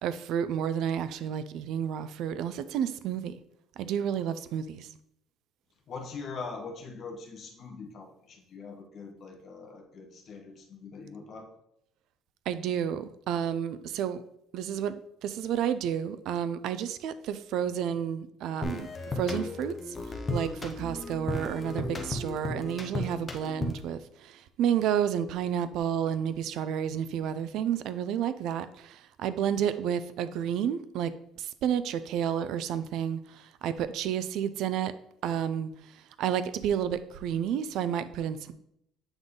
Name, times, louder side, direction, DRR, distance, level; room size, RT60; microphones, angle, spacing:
voice 1, 0.0-3.4 3.8-4.9 12.5-14.2 14.5-14.9 15.2-18.9 19.2-31.1 31.4-34.9 35.2-38.5, right 9 dB, 55° right, 13 dB, 0.4 m, -31 dB
voice 2, 5.9-11.6, left 4 dB, 35° left, 2 dB, 1.1 m, -42 dB
sound 1, 18.6-24.0, left 2 dB, 15° left, 0.7 m, -35 dB
7.9 x 3.9 x 3.7 m, 0.77 s
cardioid pair, 180°, 0 cm